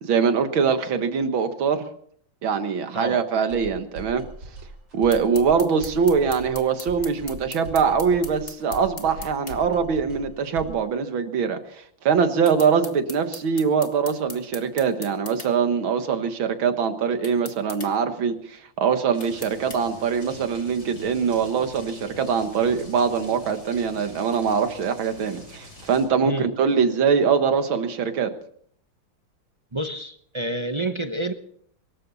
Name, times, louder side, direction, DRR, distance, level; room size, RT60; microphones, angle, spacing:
voice 1, 0.0-1.8 2.4-4.2 4.9-28.3, right 6 dB, 85° right, 8 dB, 2.3 m, -23 dB
sound 1, 3.5-10.9, right 2 dB, 70° right, 5.3 m, -41 dB
sound 2, 5.1-9.6 12.4-15.5 17.2-17.9 19.2-19.8, left 3 dB, 30° left, 1.9 m, -39 dB
sound 3, 19.1-26.1, left 1 dB, 55° left, 8.0 m, -45 dB
voice 2, 29.7-31.3, right 1 dB, 35° right, 6 dB, 0.4 m, -28 dB
24.0 x 14.0 x 4.2 m, 0.62 s
omnidirectional pair, 2.1 m